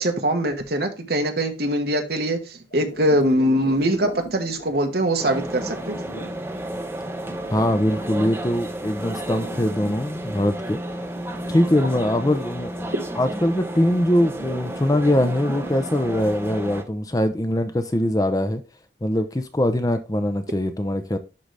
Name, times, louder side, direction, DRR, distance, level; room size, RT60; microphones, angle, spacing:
voice 1, 0.0-6.0 12.9-13.0, right 1 dB, 55° right, 1.4 m, -22 dB
sound 1, 2.7-6.4 7.0-10.0 10.6-12.1 14.1-16.3, right 1 dB, 60° left, 2.9 m, -40 dB
sound 2, 5.2-16.8, right 1 dB, 10° right, 1.0 m, -32 dB
voice 2, 7.5-10.8 11.5-18.6 19.0-21.2, left 1 dB, 20° left, 0.6 m, -22 dB
11.0 x 3.9 x 3.3 m
head